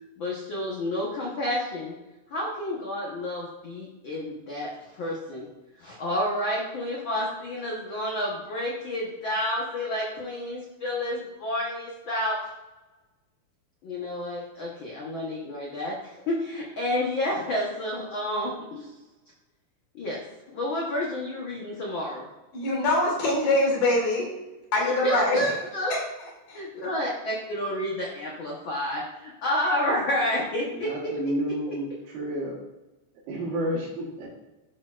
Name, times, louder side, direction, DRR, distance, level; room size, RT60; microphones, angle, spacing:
voice 1, 0.2-1.9 2.3-4.7 5.0-5.5 5.8-12.4 13.8-18.9 19.9-20.2 20.5-22.3 25.0-25.9 26.5-31.3 31.7-31.8, left 1 dB, 85° left, -3 dB, 1.0 m, -30 dB
voice 2, 22.5-24.3 24.7-25.4 25.9-26.0 26.5-26.6, left 2 dB, 50° left, -2 dB, 2.7 m, -23 dB
voice 3, 30.7-31.9 32.1-32.6 33.3-34.3, right 1 dB, 70° right, -7 dB, 2.7 m, -30 dB
12.5 x 4.4 x 2.4 m, 1.1 s
omnidirectional pair, 3.8 m